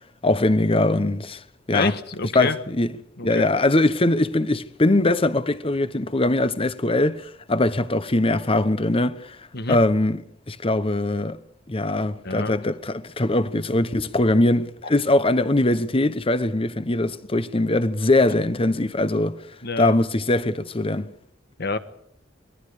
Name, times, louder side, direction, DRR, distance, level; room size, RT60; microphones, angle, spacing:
voice 1, 0.2-1.4 1.7-2.0 2.3-2.9 3.2-9.4 9.7-10.2 10.5-11.4 11.7-19.4 19.8-21.1, left 2 dB, 30° left, 1.0 m, -21 dB
voice 2, 1.7-2.6 3.2-3.5 9.5-9.8 12.2-12.5 19.6-19.9 21.6-21.8, left 3 dB, 60° left, 1.5 m, -27 dB
26.0 x 20.5 x 5.0 m
head